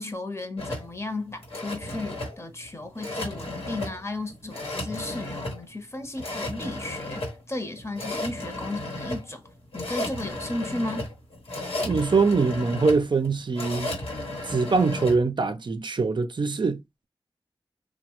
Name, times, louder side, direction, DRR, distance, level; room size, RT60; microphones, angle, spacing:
voice 1, 0.0-9.4 9.7-11.1, left 2 dB, 30° left, 0.8 m, -34 dB
sound 1, 0.6-15.2, left 1 dB, 90° left, 1.0 m, -34 dB
voice 2, 11.8-13.9 14.5-17.1, right 4 dB, 55° right, 0.4 m, -23 dB
3.0 x 2.1 x 2.9 m
cardioid pair, 45°, 10 cm